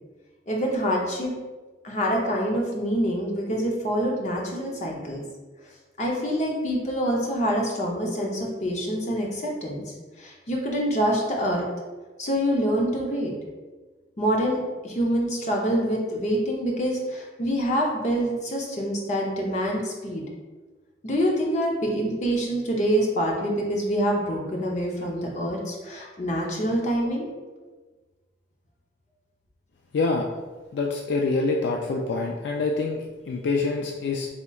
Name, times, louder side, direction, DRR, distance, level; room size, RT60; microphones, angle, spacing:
voice 1, 0.5-1.3 1.8-5.2 6.0-11.6 12.2-13.3 14.2-14.6 14.8-20.2 21.0-27.3, equal, 40° left, -1 dB, 0.6 m, -26 dB
voice 2, 29.9-30.3 30.7-34.3, left 3 dB, 75° left, 1 dB, 0.3 m, -26 dB
4.3 x 2.8 x 2.3 m, 1.3 s
head